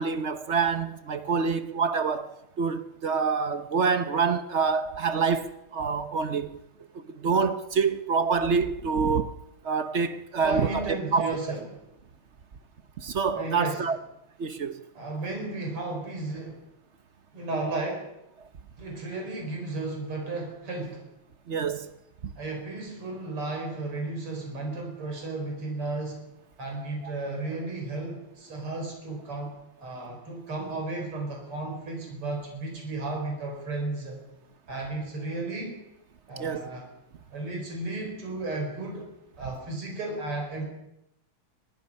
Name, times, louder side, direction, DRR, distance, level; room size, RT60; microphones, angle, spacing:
voice 1, 0.0-6.5 7.2-9.3 9.6-11.4 13.0-14.0 14.4-14.8 21.5-21.9 36.4-36.7, right 5 dB, 55° right, 0.7 m, -26 dB
voice 2, 10.4-11.8 13.4-13.8 15.0-16.6 17.3-18.1 18.8-21.0 22.4-26.2 26.6-29.6 29.8-34.2 34.7-35.8 36.3-36.9 37.3-39.0 39.4-40.6, right 2 dB, 80° right, 5.4 m, -34 dB
26.0 x 19.5 x 5.5 m
omnidirectional pair, 2.4 m